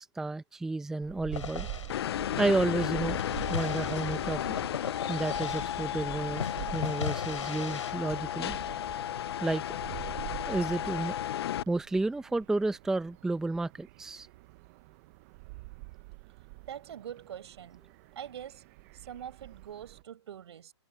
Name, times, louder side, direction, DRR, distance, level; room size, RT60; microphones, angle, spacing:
voice 1, 0.0-1.7 2.4-3.2 3.5-4.6 5.1-6.4 6.7-8.6 9.4-9.8 10.5-11.2 11.7-14.3, right 2 dB, 5° right, 0.7 m, -31 dB
sound 1, 1.0-20.0, right 22 dB, 30° right, 0.9 m, -46 dB
sound 2, 1.3-6.0 6.4-7.9, left 7 dB, 85° left, 3.9 m, -38 dB
sound 3, 1.9-11.6, left 11 dB, 55° left, 0.5 m, -34 dB
voice 2, 16.7-17.8 18.1-20.7, right 9 dB, 65° right, 6.0 m, -44 dB
hypercardioid pair, 150°, 15 cm